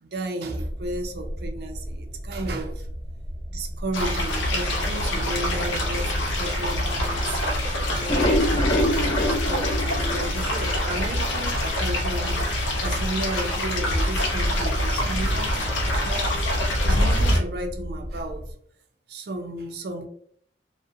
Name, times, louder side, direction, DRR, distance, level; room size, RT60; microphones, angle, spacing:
voice 1, 0.0-2.9 3.5-7.4 7.9-12.4 12.8-16.5 16.8-18.4 19.1-20.1, right 1 dB, 60° right, 3 dB, 0.4 m, -33 dB
sound 1, 0.6-18.5, equal, 10° right, 0.7 m, -35 dB
sound 2, 3.9-17.4, left 1 dB, 90° left, 0.5 m, -25 dB
sound 3, 7.9-11.1 11.5-11.6 12.0-12.1 12.4-12.5, left 1 dB, 25° left, 0.3 m, -25 dB
2.5 x 2.1 x 2.5 m, 0.65 s
head